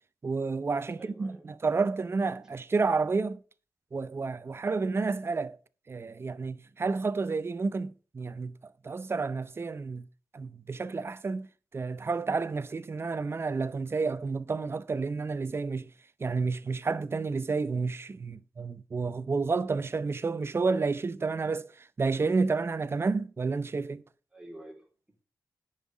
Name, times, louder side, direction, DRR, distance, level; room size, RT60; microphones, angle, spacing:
voice 1, 0.2-3.4 3.9-5.6 5.9-8.5 8.8-10.0 10.3-11.5 11.7-15.9 16.2-24.0, right 4 dB, 35° right, 0.6 m, -30 dB
voice 2, 0.9-1.5 24.3-25.2, right 1 dB, 10° right, 3.4 m, -49 dB
10.0 x 5.6 x 7.3 m
wide cardioid pair, 105°, 7 cm